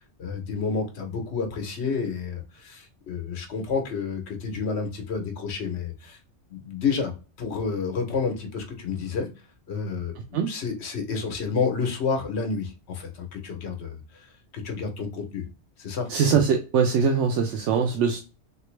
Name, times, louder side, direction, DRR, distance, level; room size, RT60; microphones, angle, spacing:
voice 1, 0.2-6.2 6.5-7.1 7.4-9.3 9.7-14.3 14.5-15.4 15.8-16.1, left 5 dB, 65° left, 4 dB, 1.1 m, -30 dB
voice 2, 16.1-18.2, right 6 dB, 85° right, 4 dB, 0.9 m, -22 dB
3.3 x 2.7 x 3.1 m, 0.32 s
omnidirectional pair, 1.2 m